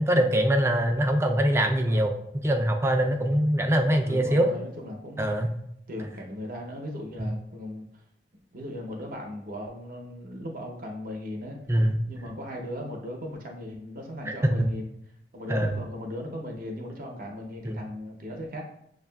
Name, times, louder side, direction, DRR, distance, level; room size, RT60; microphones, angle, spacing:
voice 1, 0.0-2.1 2.4-4.5 5.2-5.5 7.2-7.3 11.7-12.0 14.3-14.7 15.5-15.8 17.6-17.8, right 1 dB, 15° right, 4 dB, 0.3 m, -23 dB
voice 2, 4.0-5.3 5.9-7.9 8.5-11.6 12.1-14.9 15.3-18.6, left 1 dB, 50° right, 1 dB, 0.7 m, -37 dB
7.0 x 2.3 x 2.2 m, 0.73 s
head